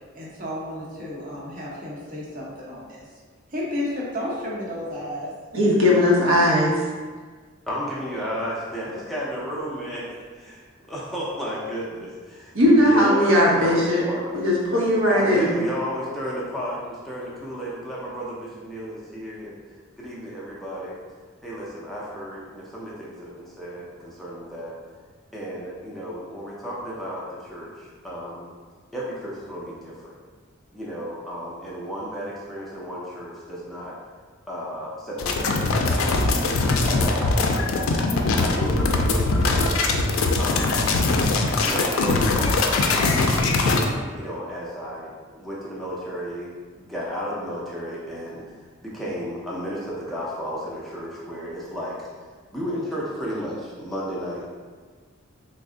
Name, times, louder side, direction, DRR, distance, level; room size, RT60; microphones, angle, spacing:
voice 1, 0.1-3.0 3.5-5.3, left 1 dB, 40° right, -5 dB, 0.8 m, -32 dB
voice 2, 5.5-6.7 12.5-14.0 14.3-15.5, left 1 dB, 85° right, -4 dB, 0.8 m, -18 dB
voice 3, 7.7-10.6 10.9-14.3 15.1-19.6 20.0-20.9 21.4-24.7 25.3-28.5 28.9-30.1 30.7-33.9 34.5-37.9 38.4-39.9 40.4-40.9 41.6-43.7 44.1-46.5 46.8-48.4 48.8-52.1 52.5-54.4, equal, ahead, -7 dB, 0.4 m, -33 dB
sound 1, 35.2-43.8, left 3 dB, 85° left, 0.4 m, -21 dB
3.4 x 2.0 x 3.6 m, 1.5 s
head